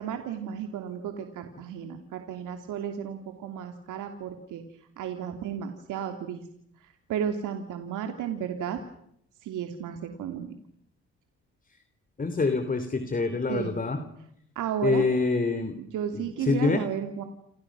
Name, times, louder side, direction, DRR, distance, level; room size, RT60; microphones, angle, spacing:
voice 1, 0.0-4.6 5.0-6.4 6.8-8.8 9.4-10.5 13.5-13.7 14.5-15.1 15.8-17.2, right 8 dB, 85° right, 5 dB, 2.8 m, -33 dB
voice 2, 12.2-14.0 14.8-15.7 16.1-16.8, left 4 dB, 30° left, 9 dB, 3.1 m, -26 dB
29.5 x 27.5 x 6.2 m, 0.72 s
cardioid pair, 90°, 30 cm